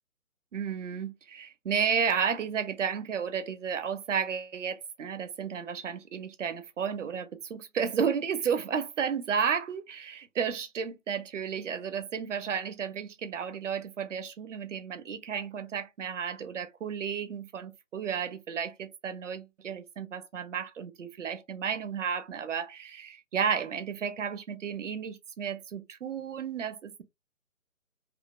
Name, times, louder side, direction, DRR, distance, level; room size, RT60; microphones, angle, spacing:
voice 1, 0.5-27.0, right 7 dB, 60° right, 0.6 m, -32 dB
2.7 x 2.0 x 2.3 m
figure-of-eight pair, 150°, 42 cm